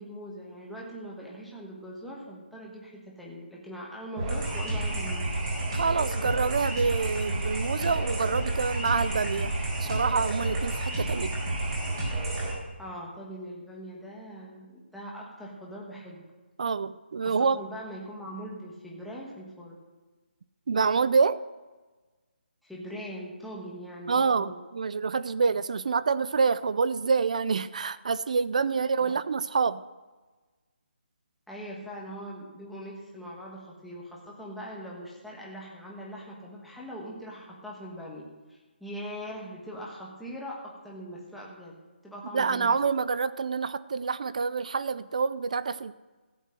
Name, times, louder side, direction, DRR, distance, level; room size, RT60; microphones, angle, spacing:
voice 1, 0.0-5.3 12.8-16.2 17.2-19.7 22.6-24.6 29.0-29.2 31.5-42.8, equal, ahead, -5 dB, 1.3 m, -41 dB
sound 1, 4.2-12.5, right 2 dB, 20° right, 4.0 m, -30 dB
voice 2, 5.7-9.5 9.8-11.3 16.6-17.6 20.7-21.4 24.1-29.8 42.3-45.9, right 5 dB, 40° right, 16 dB, 0.4 m, -27 dB
14.5 x 8.3 x 7.6 m, 1.2 s
hypercardioid pair, 175°, 6 cm